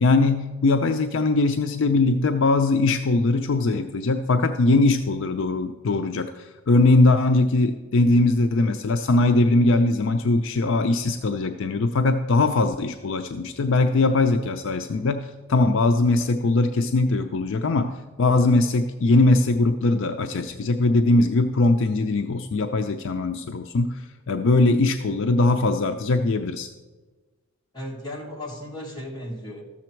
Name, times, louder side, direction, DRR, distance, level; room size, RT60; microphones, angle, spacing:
voice 1, 0.0-17.9 18.2-26.7, left 2 dB, 60° left, 7 dB, 0.4 m, -21 dB
voice 2, 27.7-29.6, left 1 dB, 20° left, -3 dB, 1.7 m, -35 dB
13.5 x 7.2 x 4.5 m, 1.3 s
head